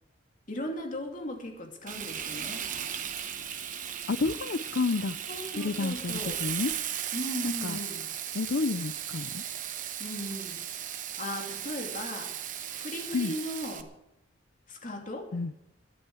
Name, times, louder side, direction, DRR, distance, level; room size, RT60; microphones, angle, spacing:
voice 1, 0.5-2.7 5.3-6.4 7.1-8.0 10.0-10.6 11.2-12.5 12.7-13.9 14.7-15.3, left 1 dB, 40° left, 2 dB, 2.8 m, -37 dB
Frying (food), 1.9-13.8, right 9 dB, 40° right, 1.0 m, -36 dB
voice 2, 4.1-5.2 5.6-6.7 7.4-7.8 8.3-9.4 13.1-13.4 15.3-15.5, left 3 dB, 60° left, 11 dB, 0.5 m, -30 dB
22.5 x 8.7 x 4.8 m, 0.82 s
head